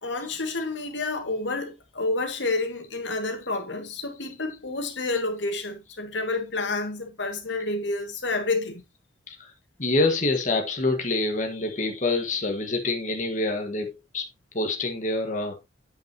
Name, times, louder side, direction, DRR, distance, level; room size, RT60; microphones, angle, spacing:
voice 1, 0.0-8.8, left 3 dB, 75° left, 2.0 m, -29 dB
voice 2, 9.8-14.3 14.5-15.6, left 2 dB, 40° left, 1.5 m, -26 dB
8.6 x 8.5 x 2.8 m
head